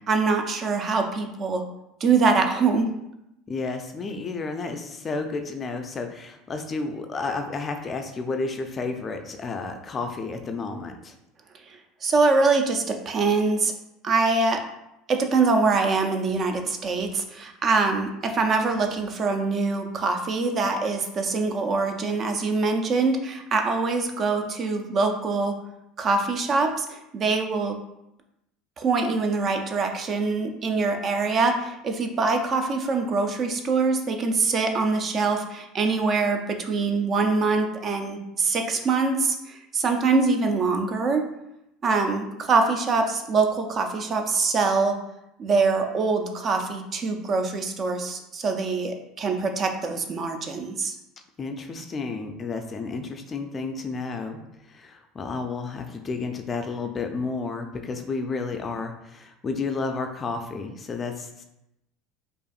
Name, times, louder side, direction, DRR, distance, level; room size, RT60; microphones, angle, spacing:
voice 1, 0.0-1.6 2.0-2.9 11.7-13.7 14.0-14.6 15.1-25.6 26.0-27.8 28.8-41.2 41.8-45.0 45.4-51.0, right 4 dB, 40° right, 5 dB, 0.5 m, -24 dB
voice 2, 3.5-11.1 51.4-54.4 54.7-61.4, left 4 dB, 30° left, 5 dB, 0.4 m, -31 dB
4.8 x 2.5 x 2.4 m, 0.87 s
supercardioid pair, 100°, 0 cm